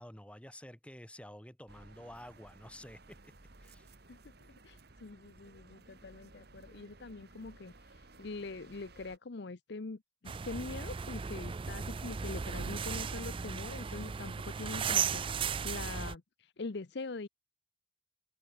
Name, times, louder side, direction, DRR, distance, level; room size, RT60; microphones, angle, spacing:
voice 1, 0.0-3.3 3.6-3.9, left 1 dB, 5° left, 3.3 m, -50 dB
sound 1, 1.7-9.2, right 2 dB, 55° right, 1.8 m, -57 dB
voice 2, 4.6-17.3, left 3 dB, 60° left, 0.7 m, -43 dB
sound 2, 10.3-16.1, right 6 dB, 25° right, 0.4 m, -36 dB
head